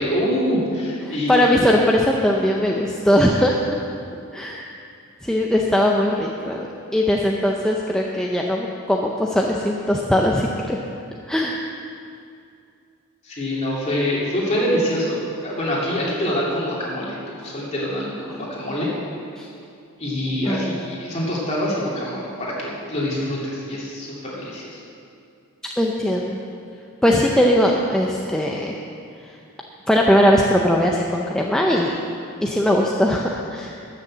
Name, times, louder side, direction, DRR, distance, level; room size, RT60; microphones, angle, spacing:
voice 1, 0.0-1.5 13.2-18.9 20.0-24.8, equal, 30° left, -6 dB, 2.8 m, -25 dB
voice 2, 1.0-3.6 4.3-4.6 5.2-6.7 6.9-10.8 11.3-11.6 19.4-19.5 20.5-20.7 25.8-26.4 27.0-28.7 29.9-32.0 32.4-33.7, equal, 5° left, -1 dB, 0.5 m, -20 dB
13.0 x 6.8 x 7.4 m, 2.5 s
head